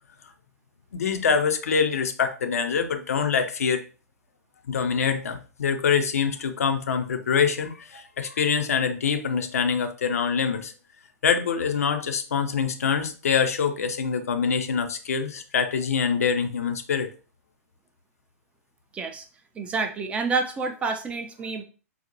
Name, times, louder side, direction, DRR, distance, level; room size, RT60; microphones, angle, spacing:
voice 1, 0.9-3.8 4.7-10.7 11.2-17.1, left 6 dB, 65° left, 7 dB, 0.5 m, -25 dB
voice 2, 18.9-19.2 19.6-21.6, right 4 dB, 15° right, 5 dB, 0.3 m, -28 dB
3.9 x 2.1 x 2.9 m, 0.36 s
figure-of-eight pair, 110°, 9 cm